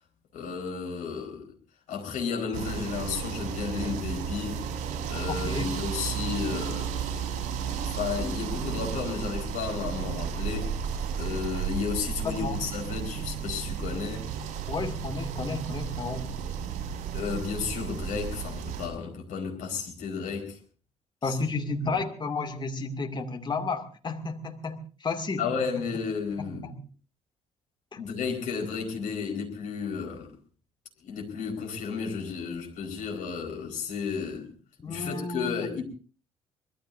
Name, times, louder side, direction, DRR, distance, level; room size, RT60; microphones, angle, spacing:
voice 1, 0.3-1.5 1.9-4.7 5.1-7.0 7.8-10.7 11.2-14.3 17.1-20.6 21.2-22.0 25.4-26.7 28.0-30.3 31.0-34.5 34.9-35.8, left 6 dB, 55° left, 4.8 m, -33 dB
sound 1, 2.5-18.9, right 7 dB, 55° right, 5.0 m, -33 dB
voice 2, 5.3-5.7 12.2-12.6 14.7-16.3 21.2-25.5 26.4-26.7 27.9-28.0 34.8-35.8, left 3 dB, 30° left, 2.5 m, -32 dB
24.5 x 21.0 x 2.7 m
figure-of-eight pair, 45°, 15 cm